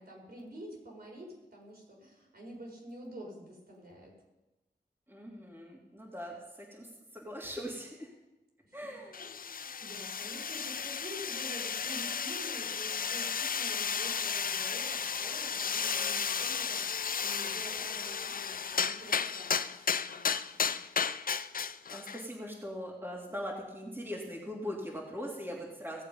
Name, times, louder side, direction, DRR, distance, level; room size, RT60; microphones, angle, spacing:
voice 1, 0.0-4.1 8.6-8.8 9.2-20.7, equal, 60° right, -2 dB, 4.6 m, -48 dB
voice 2, 5.1-6.3 6.7-6.9 7.1-8.1 8.7-9.4 21.9-26.0, equal, 10° right, -3 dB, 2.7 m, -40 dB
sound 1, 9.1-22.3, left 6 dB, 55° left, 0.4 m, -34 dB
17.0 x 7.4 x 5.5 m, 1.0 s
wide cardioid pair, 70°, 18 cm